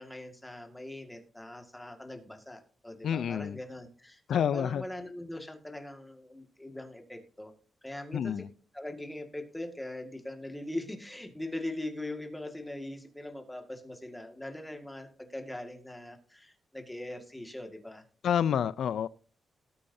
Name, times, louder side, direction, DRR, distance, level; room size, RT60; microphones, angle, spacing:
voice 1, 0.0-7.5 7.8-8.4 8.7-18.0, left 1 dB, 5° left, 1.9 m, -41 dB
voice 2, 3.0-3.6 4.3-4.8 8.1-8.5 18.2-19.1, left 8 dB, 75° left, 0.5 m, -28 dB
19.0 x 8.5 x 2.7 m
wide cardioid pair, 145°, 0 cm